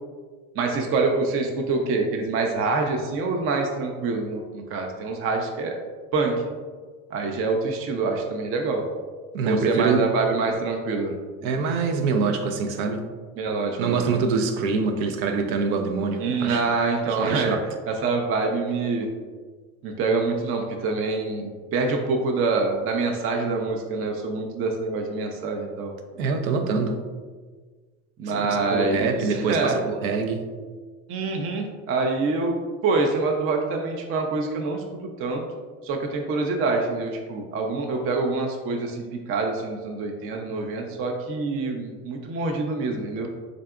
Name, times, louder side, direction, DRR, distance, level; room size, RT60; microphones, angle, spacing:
voice 1, 0.6-5.7 6.1-6.3 7.1-8.8 9.4-11.1 13.4-14.1 16.2-17.6 17.9-19.1 19.8-25.9 28.2-29.8 31.1-34.8 35.2-35.4 35.8-43.3, right 3 dB, 35° right, 3 dB, 0.4 m, -26 dB
voice 2, 9.3-10.1 11.4-13.0 13.8-16.6 17.0-17.7 26.1-27.0 28.7-30.5, right 4 dB, 80° right, 6 dB, 0.6 m, -25 dB
3.8 x 3.2 x 2.3 m, 1.5 s
supercardioid pair, 100°, 42 cm